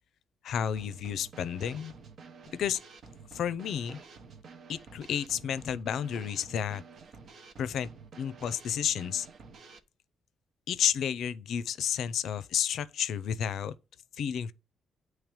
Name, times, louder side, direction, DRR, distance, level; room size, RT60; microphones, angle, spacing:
voice 1, 0.4-1.9 2.5-2.8 3.3-4.0 4.7-6.8 7.6-7.9 8.2-9.3 10.7-13.7 14.2-14.5, left 9 dB, 70° left, 0.4 m, -31 dB
Drum kit / Snare drum, 0.8-9.8, right 4 dB, 60° right, 0.9 m, -50 dB
8.8 x 3.3 x 4.9 m
cardioid pair, 90°, 0 cm